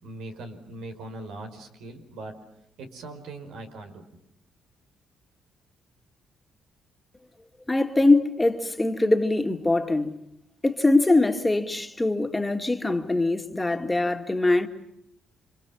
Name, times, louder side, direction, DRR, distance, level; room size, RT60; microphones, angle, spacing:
voice 1, 0.0-2.4 2.8-4.0, right 2 dB, 85° right, 5.2 m, -40 dB
voice 2, 7.7-10.1 10.6-14.7, left 2 dB, 15° left, 2.2 m, -22 dB
30.0 x 25.5 x 7.3 m
cardioid pair, 90°, 0 cm